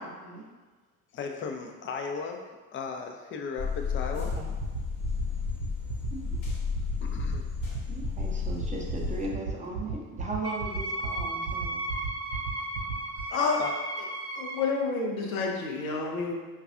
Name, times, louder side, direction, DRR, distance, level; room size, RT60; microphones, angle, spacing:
voice 1, 0.0-0.5 4.2-4.5 6.1-6.4 7.9-11.8, right 3 dB, 20° right, -2 dB, 0.6 m, -37 dB
voice 2, 1.1-4.3 7.0-7.4 13.2-13.3 13.6-13.7, left 5 dB, 30° left, 3 dB, 0.4 m, -36 dB
sound 1, 3.6-9.3, left 6 dB, 50° left, 1.0 m, -33 dB
sound 2, 4.3-13.2, right 7 dB, 55° right, 0.7 m, -34 dB
Wind instrument woodwind instrument, 10.4-14.7, right 2 dB, 10° left, 0.9 m, -35 dB
voice 3, 14.4-16.3, left 4 dB, 85° left, 0 dB, 0.5 m, -29 dB
4.7 x 2.4 x 2.4 m, 1.3 s
figure-of-eight pair, 55°, 40 cm